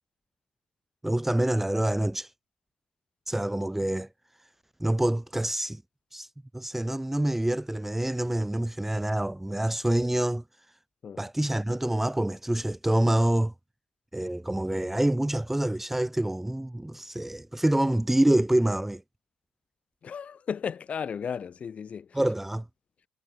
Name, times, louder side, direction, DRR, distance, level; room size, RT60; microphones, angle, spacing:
voice 1, 1.0-2.3 3.3-4.1 4.8-5.8 6.1-6.3 6.5-10.4 11.2-13.5 14.1-19.0 22.1-22.6, right 1 dB, 10° right, 1.3 m, -26 dB
voice 2, 20.0-22.0, left 7 dB, 45° left, 5.1 m, -34 dB
supercardioid pair, 65°, 3 cm